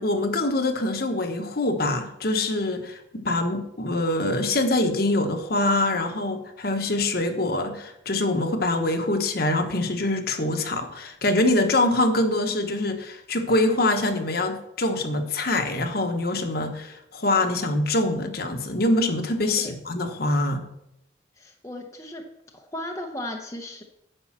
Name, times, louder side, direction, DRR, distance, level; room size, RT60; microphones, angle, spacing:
voice 1, 0.0-20.6, left 2 dB, 50° left, 6 dB, 1.1 m, -24 dB
voice 2, 21.4-22.3 22.5-23.8, left 1 dB, 15° left, 2 dB, 0.8 m, -36 dB
10.0 x 5.5 x 7.3 m, 0.83 s
head